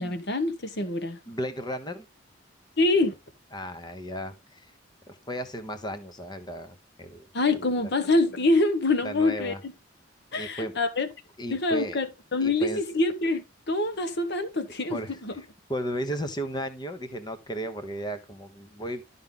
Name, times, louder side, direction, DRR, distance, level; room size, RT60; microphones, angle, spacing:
voice 1, 0.0-1.2 2.8-3.2 7.3-9.7 10.3-11.1 11.5-15.3, left 2 dB, 60° left, 1.3 m, -25 dB
voice 2, 1.3-2.0 3.5-4.7 5.1-7.3 7.5-7.6 9.0-9.6 10.4-10.7 11.4-12.0 12.4-12.8 14.9-19.0, equal, 20° left, 1.1 m, -35 dB
12.0 x 5.6 x 3.8 m
head